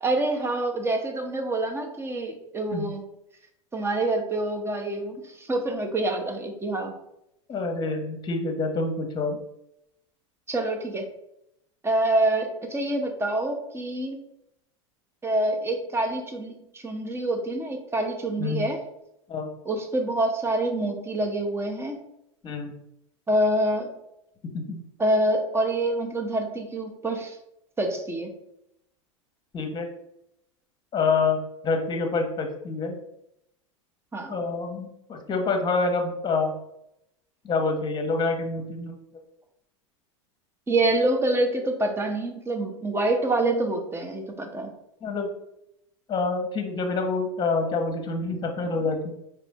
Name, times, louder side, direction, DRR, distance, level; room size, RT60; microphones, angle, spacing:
voice 1, 0.0-3.0 3.7-6.9 10.5-11.0 11.8-14.2 15.2-18.8 19.7-22.0 23.3-23.9 25.0-27.4 27.8-28.3 34.1-34.3 40.7-44.7, right 1 dB, 15° right, 4 dB, 0.9 m, -26 dB
voice 2, 7.5-9.4 18.4-18.6 19.3-19.5 22.4-22.7 24.4-24.9 29.5-29.9 30.9-31.4 31.6-33.0 34.3-36.6 37.4-38.9 45.0-45.3 46.1-49.1, left 3 dB, 25° left, 5 dB, 1.0 m, -27 dB
5.0 x 3.0 x 3.5 m, 0.82 s
hypercardioid pair, 90°, 16 cm